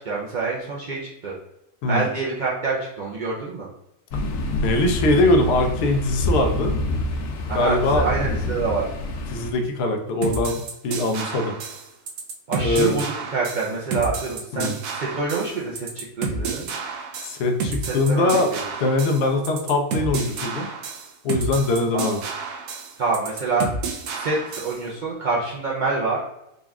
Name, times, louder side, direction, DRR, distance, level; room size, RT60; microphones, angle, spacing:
voice 1, 0.0-1.3 1.8-3.7 7.5-8.9 12.5-16.7 17.8-18.6 21.9-22.2 23.0-23.7 24.1-26.2, right 4 dB, 75° right, -5 dB, 0.4 m, -26 dB
sound 1, 4.1-9.5, left 2 dB, 90° left, 1.2 m, -27 dB
voice 2, 4.5-6.8 7.5-8.1 9.3-11.5 12.6-13.0 14.5-14.7 17.2-18.5 18.8-20.7 21.2-22.2, left 2 dB, 65° left, 5 dB, 0.6 m, -22 dB
sound 2, 10.2-24.8, right 4 dB, 90° right, 1.2 m, -30 dB
3.9 x 2.3 x 3.4 m, 0.84 s
omnidirectional pair, 1.6 m